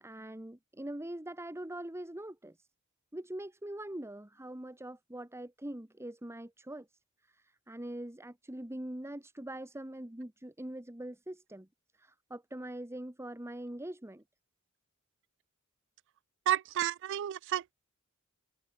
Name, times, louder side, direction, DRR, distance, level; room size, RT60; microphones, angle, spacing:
voice 1, 0.0-2.5 3.1-6.8 7.7-11.7 12.0-14.2, right 1 dB, 10° right, 1.3 m, -42 dB
voice 2, 16.5-17.7, right 11 dB, 55° right, 0.3 m, -31 dB
head